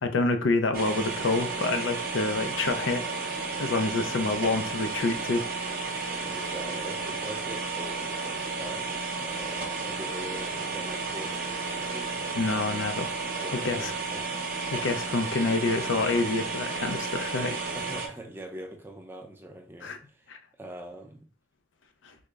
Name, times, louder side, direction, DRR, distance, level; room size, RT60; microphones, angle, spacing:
voice 1, 0.0-3.3 3.6-5.4 12.3-13.9 14.7-17.6 19.8-20.0 20.3-20.4 22.0-22.1, left 3 dB, 75° left, 8 dB, 0.5 m, -28 dB
sound 1, 0.7-18.1, right 4 dB, 50° right, 0.6 m, -33 dB
voice 2, 4.1-4.4 6.2-8.9 9.2-12.4 13.4-14.5 17.7-20.3 20.6-21.3, right 1 dB, 10° right, 3 dB, 0.5 m, -43 dB
3.7 x 2.0 x 3.3 m, 0.39 s
head